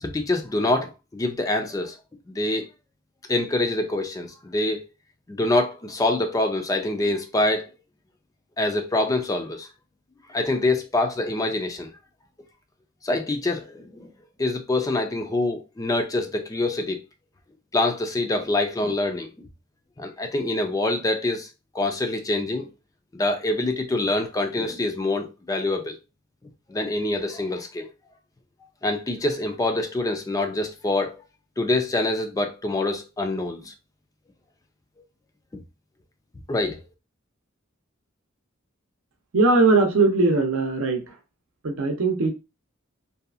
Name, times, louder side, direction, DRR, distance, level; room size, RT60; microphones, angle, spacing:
voice 1, 0.0-2.0 2.3-2.7 3.3-4.9 5.3-7.7 8.6-9.7 10.3-11.9 13.0-14.1 14.4-17.0 17.7-19.3 20.0-21.5 21.7-22.7 23.1-25.9 26.7-27.9 28.8-31.2 31.6-33.7 36.5-36.8, left 2 dB, 15° left, 0.4 m, -25 dB
voice 2, 39.3-41.1 41.6-42.3, right 3 dB, 75° right, 0.6 m, -20 dB
2.7 x 2.3 x 2.3 m
head